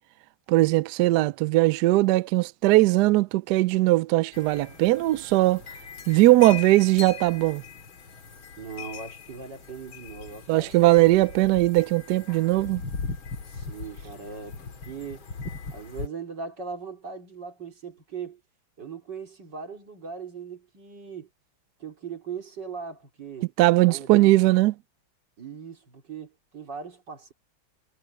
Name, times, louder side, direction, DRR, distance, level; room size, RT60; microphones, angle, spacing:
voice 1, 0.5-5.6 6.1-7.6 10.5-12.8 23.6-24.7, right 18 dB, 85° right, 0.9 m, -20 dB
sound 1, 4.3-16.1, left 5 dB, 70° left, 3.1 m, -40 dB
voice 2, 8.6-10.7 13.4-15.3 15.7-18.4 18.8-21.3 21.8-23.5 23.9-24.3 25.4-27.3, right 5 dB, 55° right, 4.2 m, -39 dB
omnidirectional pair, 2.3 m